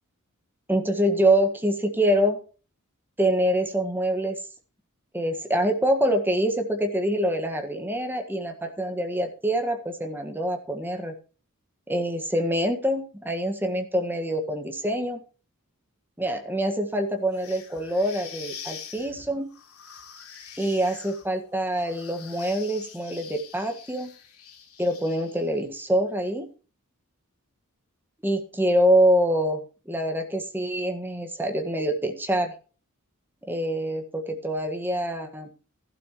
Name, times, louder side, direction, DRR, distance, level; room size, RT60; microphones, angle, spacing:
voice 1, 0.7-2.4 3.2-4.4 5.1-11.1 11.9-15.2 16.2-19.5 20.6-24.1 24.8-26.5 28.2-32.5 33.5-35.5, right 1 dB, 10° right, 4 dB, 1.6 m, -25 dB
sound 1, 17.3-25.6, left 7 dB, 85° left, 2.9 m, -45 dB
14.5 x 11.5 x 3.1 m, 0.37 s
head